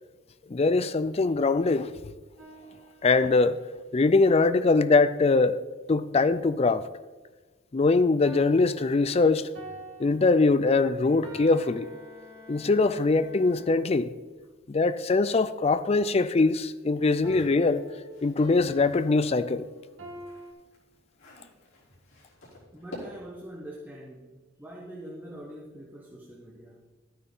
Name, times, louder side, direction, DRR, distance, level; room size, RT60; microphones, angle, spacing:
voice 1, 0.5-1.9 3.0-3.6 3.9-5.6 5.9-6.9 7.7-9.5 10.0-11.9 12.5-14.1 14.7-17.9 18.2-19.7, left 3 dB, 30° left, 0.4 m, -22 dB
sound 1, 2.4-3.8 8.2-12.8 17.2-20.5, equal, 65° right, 2.5 m, -46 dB
Bowed string instrument, 10.8-14.3, left 1 dB, 5° left, 2.1 m, -53 dB
sound 2, 17.0-19.2 19.7-23.5, left 1 dB, 85° left, 3.8 m, -49 dB
voice 2, 22.7-26.9, right 1 dB, 10° right, 1.0 m, -44 dB
12.5 x 9.4 x 4.0 m
head